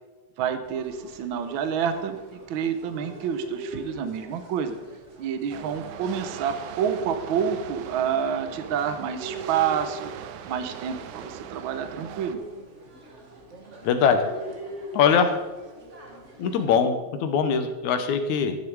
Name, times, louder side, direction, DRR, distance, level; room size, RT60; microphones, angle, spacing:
voice 1, 0.4-4.8 5.2-10.1 10.4-12.4, right 7 dB, 70° right, 9 dB, 1.2 m, -28 dB
sound 1, 0.6-16.7, right 1 dB, 35° right, 1.2 m, -43 dB
sound 2, 5.5-12.4, right 9 dB, 90° right, 2.1 m, -40 dB
voice 2, 13.8-14.3 14.9-15.3 16.4-18.6, left 6 dB, 80° left, 8 dB, 2.5 m, -22 dB
12.5 x 10.0 x 4.7 m, 1.1 s
omnidirectional pair, 3.3 m